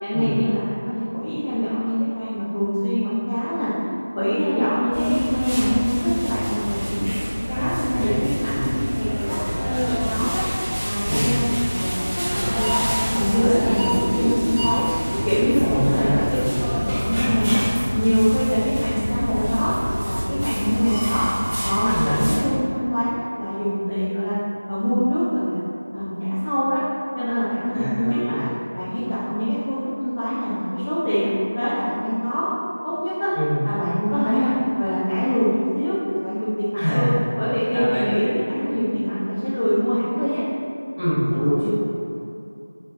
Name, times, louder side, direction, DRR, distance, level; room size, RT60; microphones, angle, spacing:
voice 1, 0.0-3.7 4.1-10.4 10.8-11.4 11.7-16.4 16.7-17.6 17.9-21.3 21.6-24.4 24.7-25.6 25.9-26.1 26.4-26.8 27.1-28.5 28.7-31.3 31.6-32.5 32.8-33.3 33.6-37.1 37.4-40.4, equal, 25° left, -10 dB, 0.4 m, -23 dB
sound 1, 4.9-22.4, equal, 35° right, 0.9 m, -26 dB
voice 2, 7.5-8.7 11.1-11.3 15.6-16.6 21.9-22.1 27.7-28.3 33.3-33.6 36.8-37.1 37.7-38.0 41.0-41.7, equal, 50° left, -15 dB, 1.5 m, -24 dB
4.1 x 2.4 x 2.7 m, 2.7 s
figure-of-eight pair, 180°, 0 cm